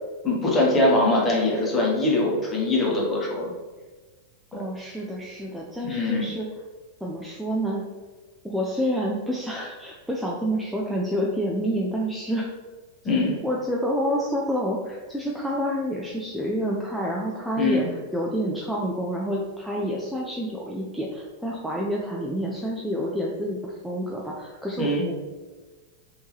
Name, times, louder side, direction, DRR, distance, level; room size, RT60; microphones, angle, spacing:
voice 1, 0.2-3.5 4.5-4.6 5.8-6.2 13.0-13.4 17.6-17.9 24.8-25.0, left 2 dB, 20° left, -4 dB, 1.0 m, -22 dB
voice 2, 4.5-6.5 7.0-7.8 8.4-12.6 13.4-25.1, equal, ahead, -4 dB, 0.4 m, -28 dB
3.4 x 2.7 x 3.0 m, 1.3 s
figure-of-eight pair, 90°, 0 cm